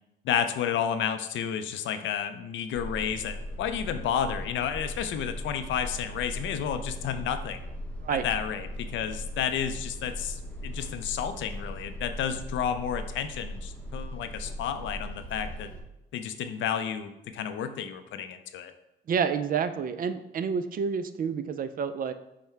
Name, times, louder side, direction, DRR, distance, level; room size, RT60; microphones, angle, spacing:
voice 1, 0.2-7.6 8.1-15.7 16.1-18.7, left 8 dB, 70° left, 9 dB, 0.5 m, -31 dB
sound 1, 2.7-15.8, equal, 5° left, 0.8 m, -39 dB
voice 2, 19.1-22.1, right 6 dB, 45° right, 11 dB, 0.4 m, -29 dB
5.7 x 2.1 x 4.5 m, 0.93 s
cardioid pair, 90°, 20 cm